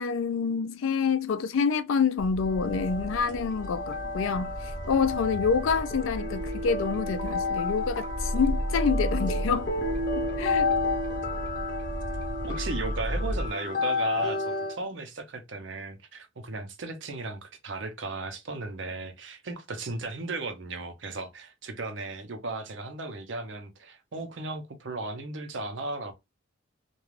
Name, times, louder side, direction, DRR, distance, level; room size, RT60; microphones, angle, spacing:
voice 1, 0.0-9.7 10.2-10.7, left 5 dB, 85° left, 0.4 m, -27 dB
sound 1, 2.2-13.5, equal, 40° right, 0.9 m, -34 dB
sound 2, 2.4-14.8, left 3 dB, 45° left, 0.8 m, -32 dB
voice 2, 12.5-26.1, right 3 dB, 65° right, 0.6 m, -36 dB
2.4 x 2.2 x 3.1 m
head